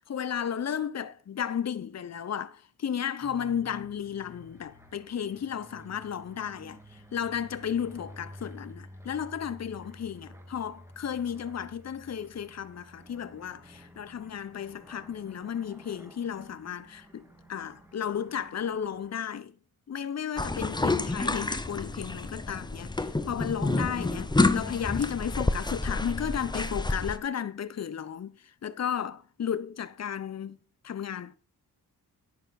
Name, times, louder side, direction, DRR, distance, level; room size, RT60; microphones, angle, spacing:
voice 1, 0.0-17.2 17.5-19.6 19.9-30.6 30.8-31.3, left 8 dB, 45° left, 0.9 m, -34 dB
sound 1, 3.2-19.2, equal, 5° right, 2.0 m, -51 dB
sound 2, 20.4-27.2, left 2 dB, 10° left, 0.8 m, -29 dB
10.5 x 7.0 x 5.9 m
cardioid pair, 80°, 37 cm